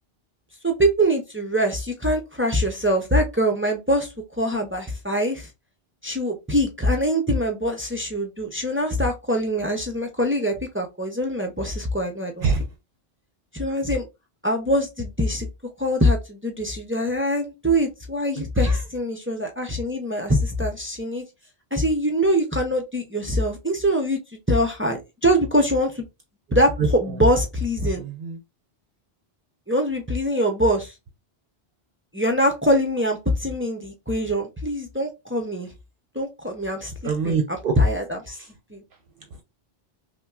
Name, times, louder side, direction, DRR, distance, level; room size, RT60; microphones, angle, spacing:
voice 1, 0.6-5.5 6.0-12.5 13.5-14.1 14.4-15.5 15.8-21.3 21.7-24.2 24.5-26.0 26.5-28.0 29.7-30.9 32.1-35.7 36.1-36.9 37.2-37.4 37.8-38.4 38.7-38.8, equal, 15° right, 0.5 m, -23 dB
voice 2, 18.3-18.8 26.8-26.9 27.9-28.4 36.8-37.7 38.3-38.5, right 5 dB, 65° right, 0.7 m, -26 dB
5.6 x 2.1 x 2.3 m
omnidirectional pair, 1.0 m